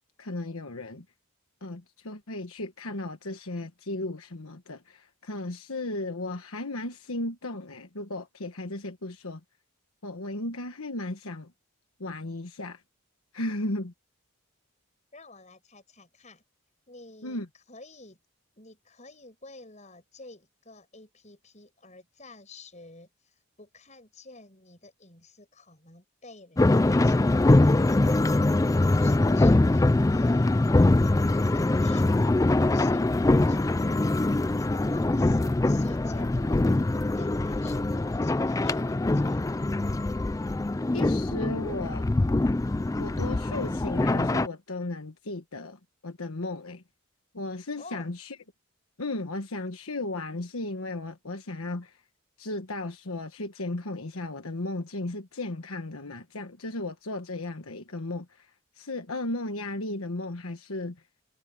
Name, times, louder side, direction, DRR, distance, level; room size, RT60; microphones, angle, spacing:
voice 1, 0.2-1.0 1.6-9.4 10.0-11.5 12.0-12.8 13.3-13.9 17.2-17.5 40.9-42.1 43.0-46.8 47.3-48.4 49.0-52.0 52.4-61.0, left 2 dB, 75° left, 1.4 m, -35 dB
voice 2, 15.1-16.4 16.9-17.4 17.7-18.2 18.6-28.4 29.0-30.6 31.2-34.0 34.6-39.5 47.8-48.1, left 3 dB, 30° left, 6.1 m, -50 dB
sound 1, 26.6-44.5, left 2 dB, 15° left, 0.3 m, -23 dB
head